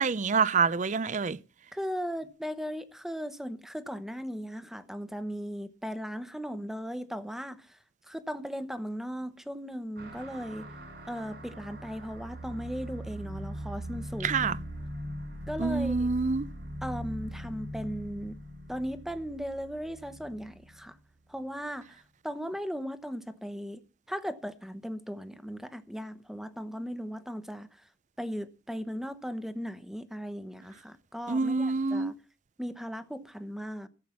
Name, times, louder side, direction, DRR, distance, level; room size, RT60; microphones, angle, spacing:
voice 1, 0.0-1.4 14.2-14.6 15.6-16.5 31.3-32.1, right 4 dB, 40° right, 0.5 m, -26 dB
voice 2, 1.7-7.8 8.1-10.7 11.1-14.6 15.5-16.1 16.8-18.4 18.7-21.0 21.3-22.0 22.2-27.7 28.2-32.2 32.6-33.9, equal, ahead, 0.9 m, -37 dB
sound 1, 9.9-20.9, equal, 60° right, 5.2 m, -41 dB
14.0 x 7.7 x 7.0 m
head